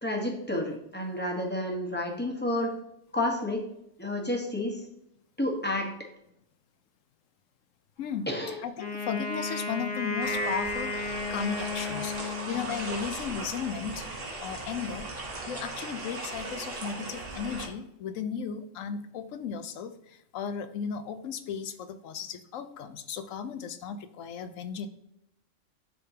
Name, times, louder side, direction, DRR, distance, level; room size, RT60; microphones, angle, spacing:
voice 1, 0.0-2.7 3.1-3.6 4.0-4.8 5.4-5.9 8.3-8.6, left 1 dB, 10° left, 0 dB, 1.0 m, -30 dB
voice 2, 8.0-8.3 8.6-14.1 14.4-24.9, left 7 dB, 85° left, 10 dB, 1.0 m, -36 dB
Wind instrument woodwind instrument, 8.8-13.0, left 3 dB, 40° left, 1.1 m, -33 dB
sound 1, 10.2-17.7, right 2 dB, 50° right, 1.4 m, -38 dB
11.0 x 3.7 x 2.8 m, 0.79 s
omnidirectional pair, 1.3 m